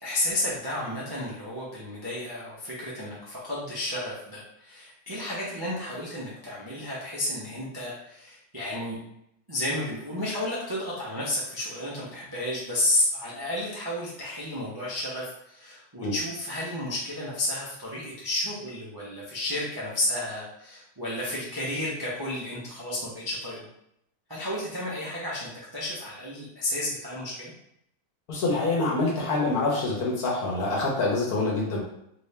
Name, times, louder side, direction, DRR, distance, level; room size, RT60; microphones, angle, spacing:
voice 1, 0.0-9.0 9.5-23.7 24.3-27.5, left 1 dB, 30° right, -7 dB, 0.4 m, -32 dB
voice 2, 28.3-31.8, left 2 dB, 60° left, -3 dB, 1.4 m, -26 dB
3.4 x 2.7 x 3.3 m, 0.77 s
omnidirectional pair, 1.9 m